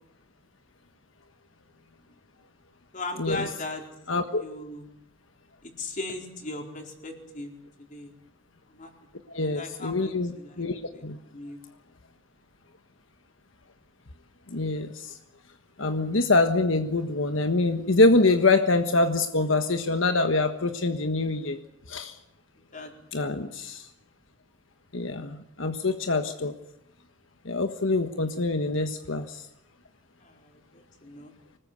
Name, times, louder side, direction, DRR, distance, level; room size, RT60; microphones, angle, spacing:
voice 1, 2.9-3.8 4.4-4.8 5.6-7.5 7.9-8.1 8.7-8.9 9.4-10.6 10.9-11.0 11.3-11.6 22.7-22.9 30.2-31.3, left 2 dB, 40° left, 2 dB, 4.4 m, -38 dB
voice 2, 4.1-4.4 9.3-11.2 14.5-15.1 15.8-21.6 21.9-22.1 23.1-23.8 24.9-26.5 27.4-29.3, left 2 dB, 90° left, 7 dB, 1.4 m, -25 dB
25.0 x 20.0 x 8.3 m, 0.81 s
head